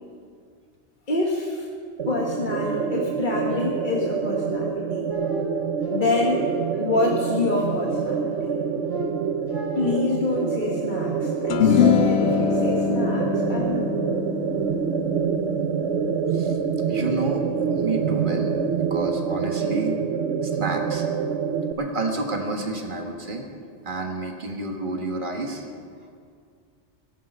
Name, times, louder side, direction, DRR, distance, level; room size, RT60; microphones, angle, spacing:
voice 1, 1.1-1.7 2.1-5.1 5.9-6.5 6.8-8.6 9.7-13.9, left 3 dB, 45° left, -2 dB, 1.5 m, -27 dB
sound 1, 2.0-21.7, right 6 dB, 75° right, 1.0 m, -26 dB
sound 2, 5.1-7.6 8.1-12.0, left 1 dB, 10° right, 3.8 m, -35 dB
sound 3, 11.5-18.0, left 9 dB, 75° left, 0.9 m, -25 dB
voice 2, 16.9-17.4 17.7-20.0 20.4-21.1 21.8-23.5 23.8-25.6, right 2 dB, 45° right, 3 dB, 1.6 m, -29 dB
16.5 x 12.5 x 5.4 m, 2.1 s
omnidirectional pair, 1.2 m